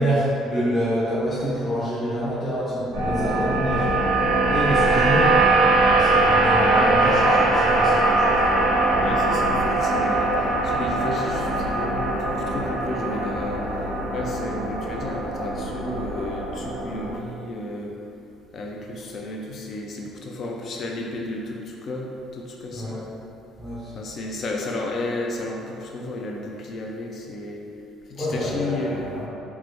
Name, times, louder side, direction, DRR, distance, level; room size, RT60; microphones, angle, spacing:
voice 1, 0.0-3.9 4.5-5.4 5.8-8.4 22.7-23.0 23.6-23.9 28.2-29.3, equal, 25° left, -10 dB, 0.8 m, -26 dB
sound 1, 2.9-17.1, right 2 dB, 90° right, 0.6 m, -21 dB
voice 2, 8.8-17.9 18.5-23.0 23.9-27.6 28.1-29.1, left 2 dB, 55° left, 0 dB, 0.4 m, -32 dB
3.2 x 2.2 x 3.0 m, 2.6 s
hypercardioid pair, 60°, 0 cm